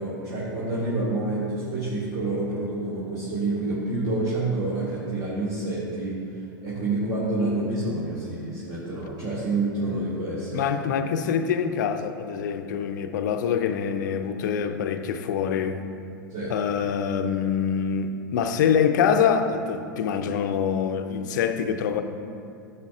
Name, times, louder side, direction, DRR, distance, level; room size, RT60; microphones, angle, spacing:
voice 1, 0.0-6.2 6.6-10.9 16.3-16.6, right 2 dB, 35° right, -8 dB, 1.9 m, -28 dB
voice 2, 10.5-15.8 16.5-22.0, left 7 dB, 60° left, 8 dB, 0.6 m, -25 dB
12.0 x 7.1 x 2.4 m, 2.4 s
figure-of-eight pair, 95°, 11 cm